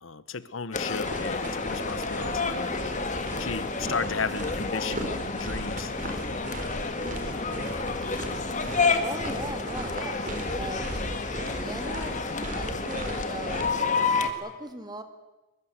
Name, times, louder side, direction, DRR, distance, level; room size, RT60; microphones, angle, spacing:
voice 1, 0.0-3.1 3.4-5.9, left 5 dB, 75° left, 15 dB, 1.1 m, -35 dB
sound 1, 0.7-14.3, left 4 dB, 40° left, 2.0 m, -30 dB
sound 2, 0.9-13.7, right 1 dB, 40° right, 4.1 m, -38 dB
voice 2, 9.0-10.9 11.5-12.2 12.4-13.8 14.4-15.0, right 2 dB, 20° right, 8 dB, 2.1 m, -39 dB
23.0 x 21.5 x 8.1 m, 1.1 s
head